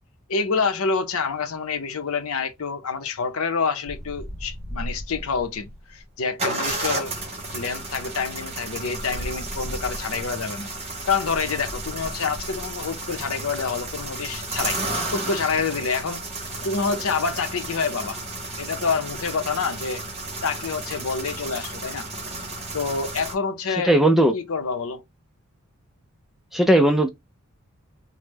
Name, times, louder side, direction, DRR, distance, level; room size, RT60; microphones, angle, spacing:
voice 1, 0.3-7.2 7.5-10.7 11.1-14.8 15.1-16.3 16.6-18.2 18.6-20.0 20.4-22.1 22.7-24.0 24.3-25.0, left 5 dB, 75° left, 0.7 m, -27 dB
sound 1, 3.9-5.8 6.4-23.3, right 2 dB, 30° right, 1.0 m, -33 dB
voice 2, 23.9-24.3 26.5-27.1, right 1 dB, ahead, 0.4 m, -17 dB
3.1 x 2.1 x 3.4 m
head